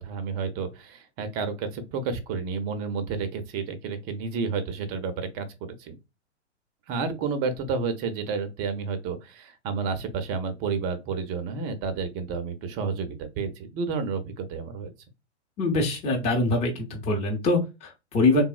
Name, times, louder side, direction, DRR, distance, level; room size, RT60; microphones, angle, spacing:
voice 1, 0.0-6.0 6.9-14.9, right 5 dB, 25° right, 0.5 m, -31 dB
voice 2, 15.6-18.4, left 2 dB, 20° left, 0.7 m, -24 dB
3.5 x 2.0 x 2.3 m
hypercardioid pair, 120°, 35 cm